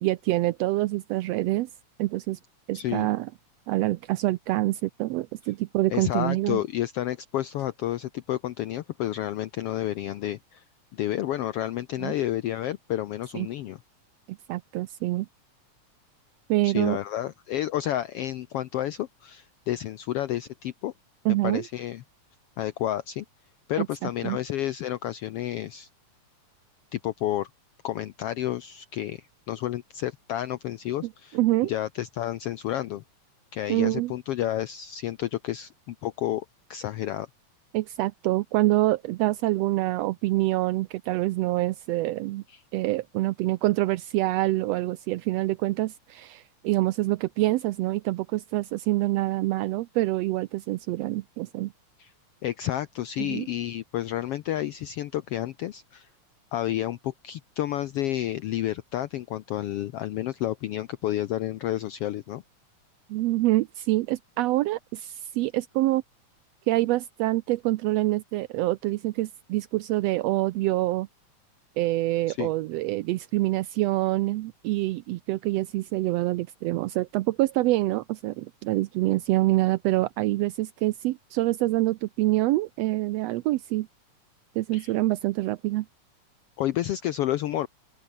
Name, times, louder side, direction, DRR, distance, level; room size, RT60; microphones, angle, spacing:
voice 1, 0.0-1.7 2.0-2.4 2.7-3.3 3.7-6.6 12.0-12.1 13.3-13.5 14.5-15.3 16.5-17.0 21.2-21.6 23.8-24.4 31.3-31.7 33.7-34.1 37.7-42.4 42.7-51.7 53.2-53.5 63.1-66.0 66.7-71.1 71.8-83.9 84.5-85.9, right 17 dB, 80° right, 1.5 m, -26 dB
voice 2, 2.7-3.1 5.9-10.6 10.9-13.8 16.6-20.9 21.4-22.0 22.6-23.2 23.7-25.9 26.9-27.5 27.8-33.0 33.5-36.4 36.7-37.3 42.5-42.6 52.0-52.1 52.4-56.1 56.5-62.4 72.3-72.5 84.7-84.9 86.6-87.7, left 13 dB, 75° left, 1.4 m, -30 dB
open air
omnidirectional pair, 3.5 m